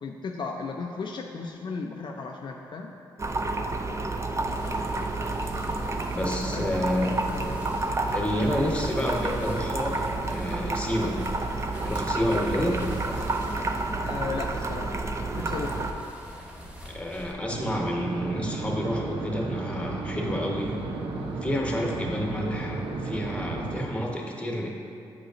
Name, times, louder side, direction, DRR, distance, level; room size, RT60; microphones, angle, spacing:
voice 1, 0.0-2.9 6.5-6.7 6.9-7.6 14.0-14.9 15.3-16.0, left 4 dB, 55° left, 1 dB, 0.4 m, -35 dB
sound 1, 3.2-15.9, right 2 dB, 30° right, 0.4 m, -30 dB
sound 2, 4.4-17.3, equal, 15° right, 1.1 m, -44 dB
voice 2, 6.1-7.1 8.1-10.0 10.2-11.2 11.8-12.8 16.8-20.8 21.4-24.7, equal, 10° left, -1 dB, 1.0 m, -29 dB
sound 3, 17.5-23.8, right 3 dB, 75° right, 0.6 m, -33 dB
7.8 x 5.0 x 2.5 m, 2.6 s
cardioid pair, 60°, 9 cm